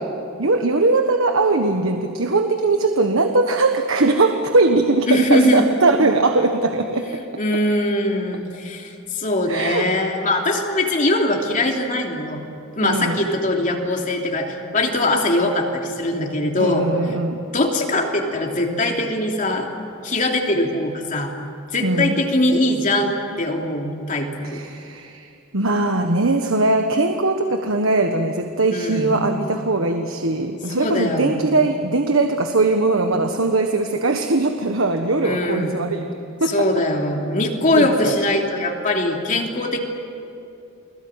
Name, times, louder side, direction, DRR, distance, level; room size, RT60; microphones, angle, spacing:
voice 1, 0.4-7.2 9.5-9.8 12.8-13.2 16.6-17.4 21.8-22.2 24.4-36.1 36.4-36.7 37.8-38.2, right 2 dB, 70° right, 5 dB, 1.4 m, -20 dB
voice 2, 5.1-5.7 7.4-12.4 12.8-17.1 17.5-19.7 20.0-21.3 21.7-24.6 28.7-29.2 30.8-31.6 35.2-35.8 36.5-39.8, left 1 dB, 40° left, 1 dB, 3.1 m, -21 dB
30.0 x 20.5 x 9.1 m, 2.6 s
head